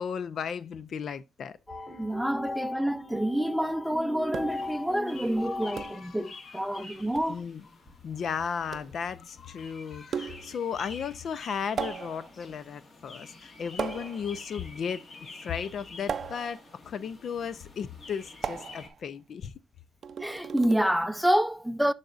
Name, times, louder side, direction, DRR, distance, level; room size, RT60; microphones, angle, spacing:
voice 1, 0.0-1.6 5.5-6.9 7.2-7.6 8.0-19.5, left 7 dB, 55° left, 0.5 m, -35 dB
sound 1, 1.7-6.3, left 2 dB, 15° left, 2.2 m, -38 dB
voice 2, 2.0-7.4 20.2-21.9, right 1 dB, ahead, 0.6 m, -28 dB
sound 2, 4.3-4.8 5.8-6.1 7.1-7.4 8.7-9.0 10.1-10.6 11.8-12.4 13.8-14.4 16.1-16.7 18.4-19.0 20.0-20.8, right 7 dB, 55° right, 0.5 m, -36 dB
sound 3, 4.5-18.9, left 3 dB, 40° left, 2.0 m, -49 dB
11.5 x 4.1 x 2.5 m
cardioid pair, 90°, 0 cm